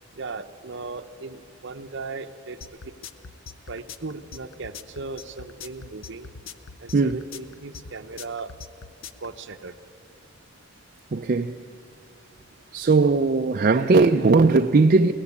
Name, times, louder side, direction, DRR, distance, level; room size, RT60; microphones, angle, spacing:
voice 1, 0.2-2.6 3.7-6.3 6.8-8.5 9.2-9.7, right 3 dB, 60° right, 0.8 m, -37 dB
sound 1, 2.6-9.3, left 6 dB, 70° left, 0.7 m, -41 dB
voice 2, 11.1-11.6 12.7-15.1, right 3 dB, 40° right, 0.4 m, -18 dB
21.5 x 17.5 x 8.5 m
head